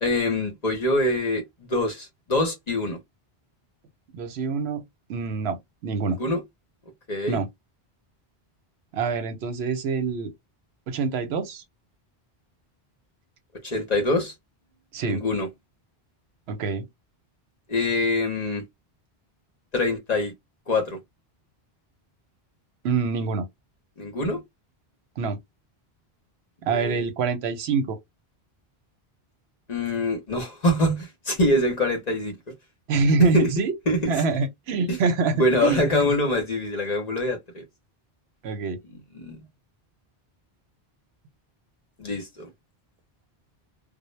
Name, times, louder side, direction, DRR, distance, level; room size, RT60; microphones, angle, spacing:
voice 1, 0.0-3.0 6.2-6.4 7.1-7.4 13.6-14.3 15.0-15.5 17.7-18.6 19.7-20.3 20.7-21.0 24.0-24.4 26.7-27.1 29.7-32.3 33.2-33.5 33.9-34.2 34.9-35.0 35.4-37.6 39.1-39.4 42.0-42.5, left 1 dB, 45° left, 0.7 m, -24 dB
voice 2, 4.1-4.8 5.1-6.2 7.3-7.5 8.9-10.3 10.9-11.6 14.9-15.2 16.5-16.9 22.8-23.5 25.2-25.4 26.6-28.0 32.9-33.7 34.1-36.1 38.4-38.8, right 4 dB, 80° right, 0.9 m, -25 dB
2.0 x 2.0 x 3.0 m
omnidirectional pair, 1.1 m